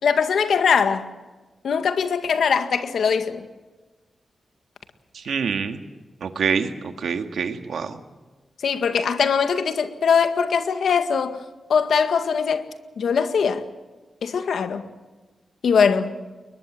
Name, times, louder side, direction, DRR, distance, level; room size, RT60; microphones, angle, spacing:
voice 1, 0.0-1.1 1.6-3.5 8.6-11.4 11.7-12.7 13.0-13.7 14.2-14.9 15.6-16.1, left 6 dB, 80° left, 1.9 m, -21 dB
voice 2, 5.1-5.8 6.2-8.0, right 6 dB, 80° right, 1.9 m, -26 dB
22.0 x 21.0 x 7.7 m
wide cardioid pair, 150°, 0 cm